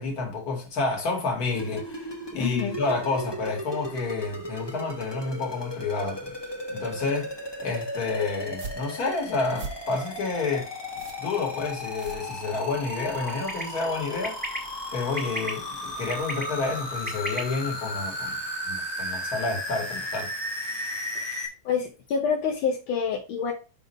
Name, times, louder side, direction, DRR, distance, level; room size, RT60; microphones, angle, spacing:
voice 1, 0.0-6.4 6.7-7.3 7.6-10.7 11.2-14.4 14.9-18.4 18.7-20.3, left 3 dB, 45° left, 2.1 m, -29 dB
sound 1, 1.5-21.5, equal, 15° left, 1.0 m, -35 dB
voice 2, 2.3-2.8 21.1-23.5, left 6 dB, 75° left, 1.7 m, -28 dB
sound 2, 8.6-12.9, right 4 dB, 55° right, 1.5 m, -42 dB
sound 3, 11.6-17.5, right 1 dB, 5° right, 1.2 m, -39 dB
5.6 x 4.3 x 5.2 m
omnidirectional pair, 2.3 m